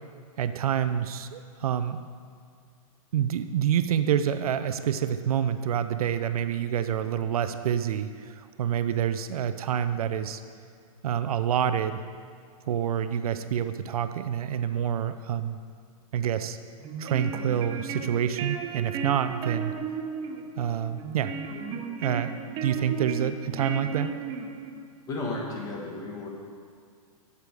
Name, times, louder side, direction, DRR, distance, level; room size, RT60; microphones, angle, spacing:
voice 1, 0.4-2.0 3.1-10.4 11.0-12.0 12.7-15.6 16.1-16.6 17.0-19.7 20.6-21.4 22.0-22.3 22.6-24.1, right 9 dB, 75° right, 10 dB, 0.5 m, -27 dB
sound 1, 16.8-24.9, right 5 dB, 25° right, 0.5 m, -35 dB
voice 2, 25.1-26.3, left 2 dB, 20° left, -1 dB, 1.5 m, -33 dB
8.3 x 6.9 x 4.8 m, 2.1 s
hypercardioid pair, 140°, 19 cm